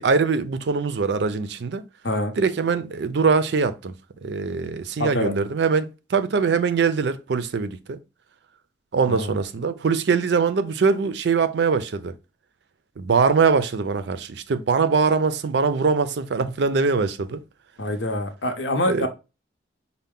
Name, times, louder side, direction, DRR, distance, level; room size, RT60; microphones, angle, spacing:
voice 1, 0.0-1.8 2.4-3.9 4.2-8.0 8.9-12.2 13.0-17.4 18.9-19.1, right 5 dB, 65° right, 0.4 m, -22 dB
voice 2, 5.0-5.3 9.1-9.3 17.8-19.1, left 1 dB, 80° left, 0.8 m, -25 dB
5.4 x 2.2 x 3.6 m
head